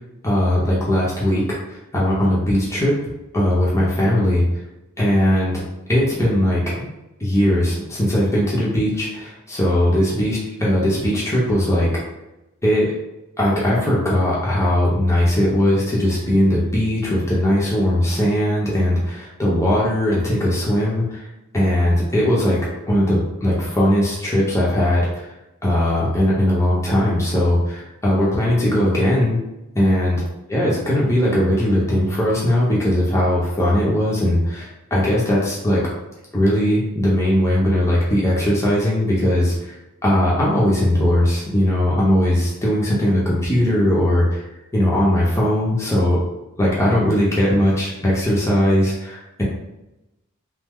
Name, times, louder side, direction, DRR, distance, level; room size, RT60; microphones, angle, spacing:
voice 1, 0.2-1.4 1.7-2.9 3.3-4.4 5.0-5.6 5.9-6.9 7.2-11.9 12.6-12.9 13.4-21.3 21.5-22.6 22.9-25.3 25.6-29.4 29.7-30.2 30.5-35.8 36.3-39.8 40.0-44.4 44.7-46.2 46.6-49.4, left 1 dB, 15° left, -6 dB, 0.7 m, -19 dB
3.1 x 2.0 x 3.5 m, 0.94 s
head